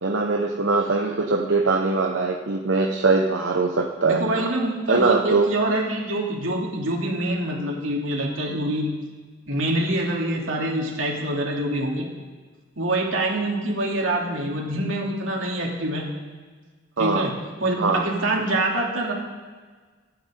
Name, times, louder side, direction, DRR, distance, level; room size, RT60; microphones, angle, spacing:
voice 1, 0.0-4.4 4.9-5.5 17.0-17.3 17.8-18.0, right 3 dB, 75° right, 1 dB, 1.0 m, -22 dB
voice 2, 4.1-8.9 9.5-12.1 12.8-16.1 17.0-19.1, right 1 dB, 90° right, -2 dB, 3.0 m, -25 dB
25.0 x 9.1 x 3.8 m, 1.4 s
head